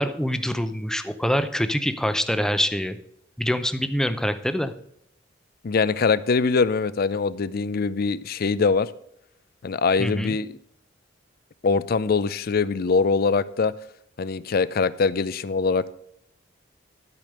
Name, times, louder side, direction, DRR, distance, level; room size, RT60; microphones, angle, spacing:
voice 1, 0.0-3.0 3.4-4.7 10.0-10.4, equal, 5° left, 10 dB, 0.6 m, -25 dB
voice 2, 5.6-8.9 9.6-10.5 11.6-13.7 14.2-15.9, left 4 dB, 50° left, 17 dB, 0.5 m, -23 dB
12.5 x 5.2 x 6.4 m, 0.74 s
head